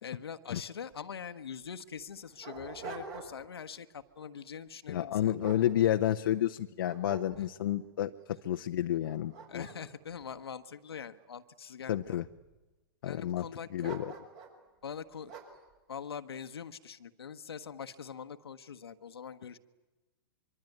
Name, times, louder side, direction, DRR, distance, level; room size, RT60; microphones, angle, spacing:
voice 1, 0.0-5.4 7.4-7.5 9.5-12.2 13.0-14.0 14.8-15.3 15.9-19.6, left 7 dB, 80° left, 8 dB, 1.3 m, -43 dB
Dog, 0.9-1.0 1.2-1.3 1.9-3.6 4.0-4.3 4.9-6.4 6.8-7.7 8.3-8.4 8.9-11.2 11.9-12.5 13.8-14.6 15.3-15.7, right 5 dB, 45° right, 6.0 m, -47 dB
voice 2, 4.9-9.7 11.9-12.2 13.0-13.5 13.7-14.1, left 11 dB, 65° left, 6 dB, 0.8 m, -30 dB
24.0 x 24.0 x 9.3 m, 1.2 s
hypercardioid pair, 120°, 13 cm